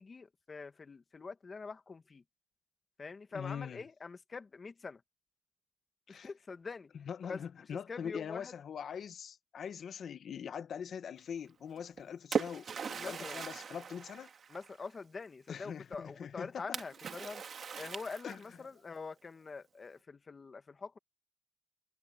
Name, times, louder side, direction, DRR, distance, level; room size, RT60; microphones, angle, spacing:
voice 1, 0.0-2.2 3.0-5.0 6.1-6.9 7.2-7.4 7.9-8.5 13.0-13.4 14.5-21.0, left 4 dB, 35° left, 1.5 m, -45 dB
voice 2, 3.3-3.8 6.1-6.3 6.9-14.3 15.5-16.6 18.2-18.4, left 7 dB, 70° left, 1.5 m, -42 dB
Splash splatter, 11.8-14.9 16.7-18.7, right 6 dB, 55° right, 1.9 m, -39 dB
cardioid pair, 110°, 0 cm